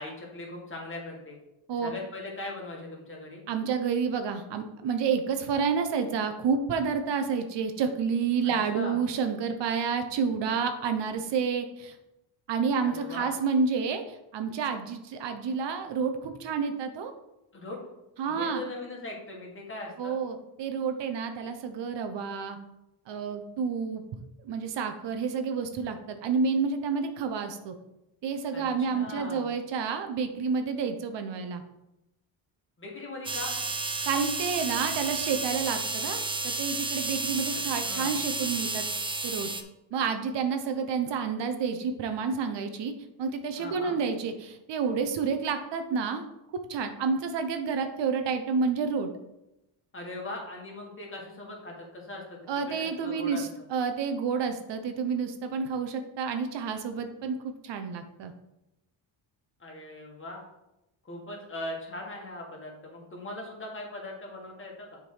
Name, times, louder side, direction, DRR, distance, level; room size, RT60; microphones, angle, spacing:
voice 1, 0.0-1.4 1.8-3.4 8.4-9.0 12.8-13.3 17.5-17.8 18.3-20.2 28.5-29.5 32.8-33.5 37.5-38.2 43.6-44.0 49.9-52.4 52.7-53.4 59.6-60.4 61.0-65.0, left 2 dB, 25° left, -1 dB, 1.9 m, -40 dB
voice 2, 3.5-11.9 12.5-17.1 18.2-18.6 20.0-22.6 23.1-24.0 24.5-27.7 28.2-31.6 34.1-38.9 39.2-39.5 39.9-42.9 43.2-46.2 46.7-49.1 52.5-58.3, right 5 dB, 60° right, 7 dB, 0.8 m, -29 dB
sound 1, 33.2-39.6, right 3 dB, 10° right, 0.4 m, -32 dB
6.9 x 3.7 x 4.8 m, 0.91 s
cardioid pair, 105°, 47 cm